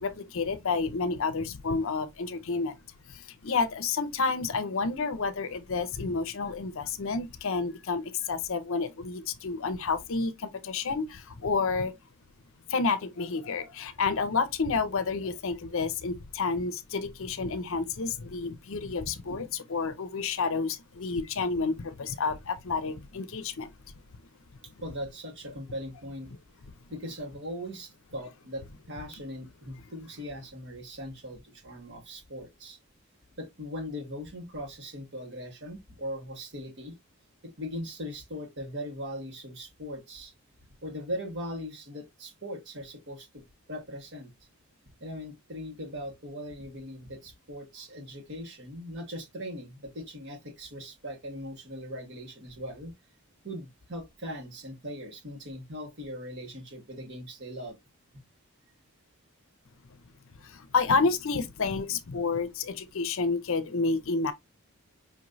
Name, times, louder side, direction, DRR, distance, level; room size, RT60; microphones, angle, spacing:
voice 1, 0.0-2.8 3.1-11.9 12.7-23.7 60.4-64.3, left 4 dB, 60° left, 0.6 m, -30 dB
voice 2, 24.8-26.3 26.9-32.8 33.4-37.0 37.4-40.3 40.8-43.4 43.7-44.3 45.0-52.9 53.4-57.8, equal, 55° right, 1.6 m, -40 dB
5.3 x 3.0 x 2.6 m
head